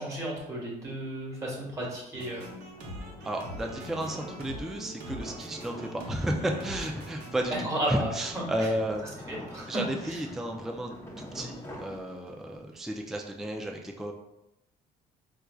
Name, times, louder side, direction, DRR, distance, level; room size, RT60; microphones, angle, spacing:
voice 1, 0.0-2.5 7.6-8.1 8.6-8.7 9.3-10.2, right 1 dB, 20° right, -3 dB, 1.3 m, -33 dB
sound 1, 1.7-12.6, equal, 15° left, 0.8 m, -46 dB
sound 2, 2.1-7.6, equal, 85° right, 0.7 m, -43 dB
voice 2, 3.2-9.2 9.7-14.1, right 1 dB, ahead, 2 dB, 0.3 m, -33 dB
4.3 x 2.4 x 2.3 m, 0.86 s
cardioid pair, 110°, 17 cm